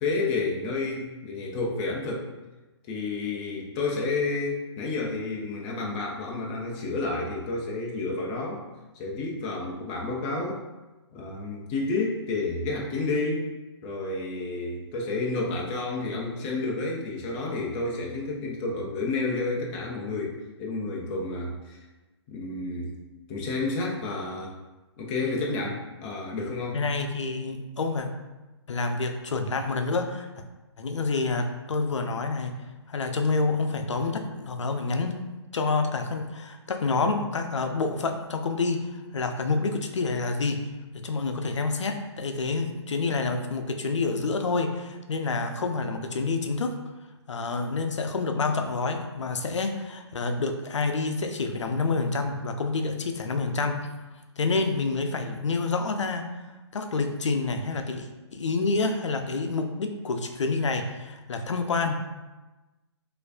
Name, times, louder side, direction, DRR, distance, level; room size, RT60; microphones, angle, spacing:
voice 1, 0.0-2.3 2.9-8.6 8.9-10.6 11.1-13.5 13.8-21.8 22.3-23.0 23.3-24.5 25.0-26.8, left 3 dB, 15° left, -2 dB, 0.3 m, -30 dB
voice 2, 26.7-28.1 28.7-30.3 30.8-32.6 32.9-35.2 35.5-40.7 40.9-46.7 47.3-53.9 54.4-56.3 56.7-61.9, left 3 dB, 85° left, 6 dB, 0.5 m, -28 dB
4.3 x 2.6 x 2.5 m, 1.1 s
hypercardioid pair, 155°, 15 cm